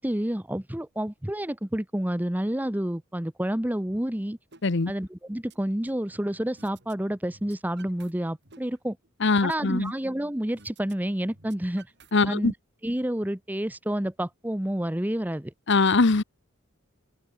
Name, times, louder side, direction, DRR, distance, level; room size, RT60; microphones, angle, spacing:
voice 1, 0.0-4.4 4.9-9.0 9.4-11.9 12.3-12.5 12.8-15.5, right 1 dB, 10° right, 0.8 m, -29 dB
sound 1, 4.5-4.6 5.0-6.1 6.6-7.0 7.2-8.1 8.4-10.1 10.6-10.9 11.2-12.5, right 4 dB, 55° right, 7.3 m, -55 dB
voice 2, 9.2-9.9 12.1-12.5 15.7-16.2, left 3 dB, 60° left, 0.9 m, -22 dB
open air
head